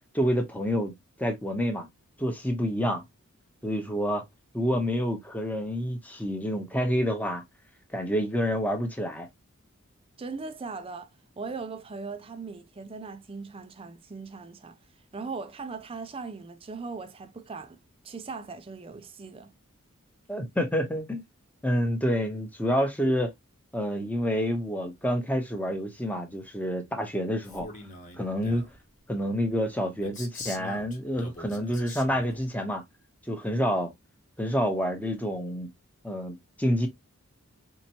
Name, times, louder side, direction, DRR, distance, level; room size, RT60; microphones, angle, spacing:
voice 1, 0.1-0.9 1.2-1.9 2.2-3.0 3.6-4.2 4.5-7.4 7.9-9.3 20.3-21.2 21.6-23.3 23.7-27.7 28.2-28.6 29.1-32.8 33.3-33.9 34.4-35.7 36.0-36.9, equal, 5° left, 0.8 m, -28 dB
voice 2, 10.2-11.1 11.4-14.8 15.1-17.8 18.0-19.5, right 4 dB, 25° right, 0.4 m, -39 dB
Male speech man speaking, 27.4-28.8 30.0-32.4, left 2 dB, 35° left, 1.1 m, -43 dB
4.3 x 2.9 x 2.8 m
head